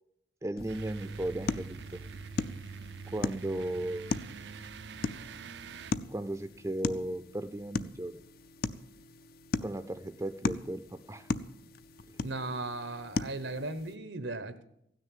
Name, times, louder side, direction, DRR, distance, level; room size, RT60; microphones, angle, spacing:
voice 1, 0.4-2.1 3.1-4.1 6.1-8.2 9.6-11.3 12.2-12.3, right 1 dB, 15° right, 9 dB, 0.5 m, -36 dB
sound 1, 0.6-14.0, left 3 dB, 50° left, 0.5 m, -38 dB
sound 2, 0.7-5.9, right 5 dB, 70° right, 0.4 m, -44 dB
voice 2, 12.2-14.6, right 2 dB, 85° right, 11 dB, 1.0 m, -37 dB
16.0 x 6.5 x 9.1 m, 0.76 s
head